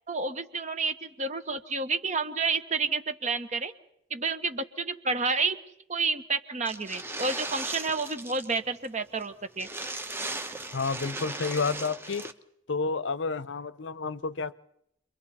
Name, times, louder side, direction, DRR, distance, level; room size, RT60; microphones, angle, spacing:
voice 1, 0.1-3.7 4.1-5.6 5.9-9.7, right 4 dB, 40° right, 10 dB, 1.1 m, -30 dB
sound 1, 6.7-8.6 8.8-8.9 9.2-9.3 9.6-12.3, right 2 dB, 10° right, 0.8 m, -37 dB
voice 2, 10.7-12.3 12.7-14.5, left 4 dB, 80° left, 16 dB, 0.7 m, -30 dB
29.5 x 23.0 x 4.2 m, 0.77 s
head